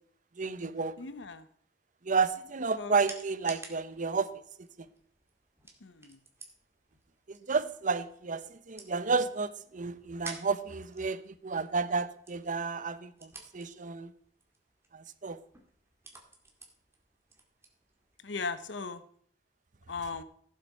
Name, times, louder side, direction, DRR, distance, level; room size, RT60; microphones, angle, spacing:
voice 1, 0.4-1.0 2.0-4.3 4.6-4.9 7.3-14.1 14.9-15.4, right 4 dB, 45° right, 0.8 m, -31 dB
voice 2, 1.0-1.5 2.8-2.9 5.8-6.2 18.2-19.0 19.9-20.2, left 4 dB, 75° left, 1.0 m, -37 dB
sound 1, 2.2-18.6, right 3 dB, 15° right, 2.2 m, -53 dB
16.5 x 7.5 x 5.4 m
head